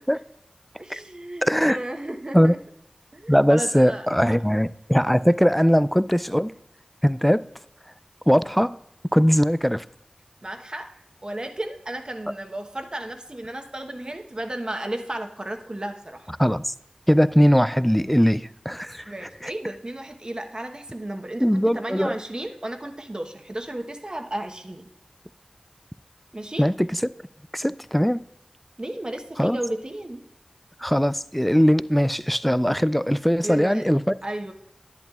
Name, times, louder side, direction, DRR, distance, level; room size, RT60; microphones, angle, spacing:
voice 1, 0.8-2.6 3.1-4.4 10.4-16.3 19.1-24.9 26.3-26.7 28.8-30.2 33.4-33.9 34.2-34.5, right 1 dB, 40° right, 1.0 m, -34 dB
voice 2, 1.4-1.8 2.3-2.5 3.3-6.5 7.0-7.4 8.3-8.8 9.1-9.8 16.4-16.7 17.1-19.1 19.4-19.5 21.4-22.1 26.6-26.9 27.5-28.2 29.4-29.6 30.8-34.1, equal, 5° left, 0.3 m, -20 dB
10.5 x 10.5 x 2.4 m
wide cardioid pair, 50°, 2 cm